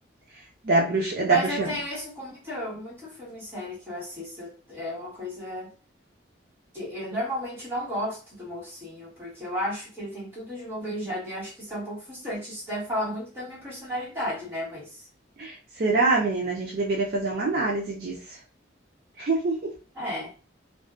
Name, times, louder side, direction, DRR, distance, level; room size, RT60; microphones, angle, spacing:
voice 1, 0.6-1.7 15.4-18.1 19.2-19.6, right 3 dB, 50° right, 0.4 m, -24 dB
voice 2, 1.3-5.7 6.7-15.0 19.9-20.3, equal, 10° right, 1.3 m, -33 dB
2.4 x 2.1 x 2.3 m
head